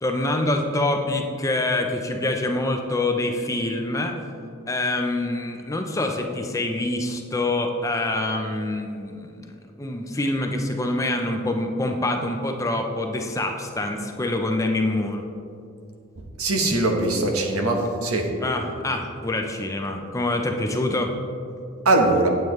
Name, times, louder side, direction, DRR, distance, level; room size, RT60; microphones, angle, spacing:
voice 1, 0.0-4.2 4.7-15.2 18.4-21.1, left 2 dB, 15° left, 3 dB, 0.5 m, -25 dB
voice 2, 16.4-18.3 21.8-22.3, right 2 dB, 80° right, 2 dB, 1.0 m, -21 dB
8.7 x 7.9 x 3.2 m, 2.5 s
head